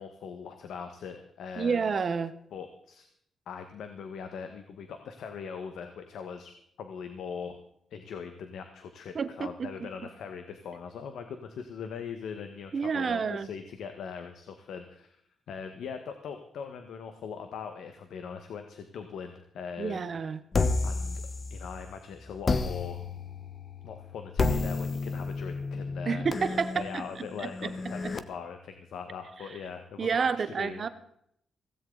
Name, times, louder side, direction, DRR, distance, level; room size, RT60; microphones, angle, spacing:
voice 1, 0.0-1.9 2.5-3.1 3.5-7.6 7.9-15.1 15.5-20.2 20.8-21.2 21.5-23.0 23.8-26.3 26.7-30.9, left 6 dB, 85° left, 7 dB, 1.4 m, -41 dB
voice 2, 1.6-2.3 9.1-9.9 12.7-13.5 19.8-20.4 26.1-27.0 27.4-27.7 28.0-28.1 30.0-30.9, right 5 dB, 40° right, 12 dB, 0.9 m, -29 dB
sound 1, 20.5-21.9 22.4-28.2, left 3 dB, 35° left, 1.0 m, -31 dB
17.0 x 15.5 x 4.0 m, 0.70 s
wide cardioid pair, 160°, 0 cm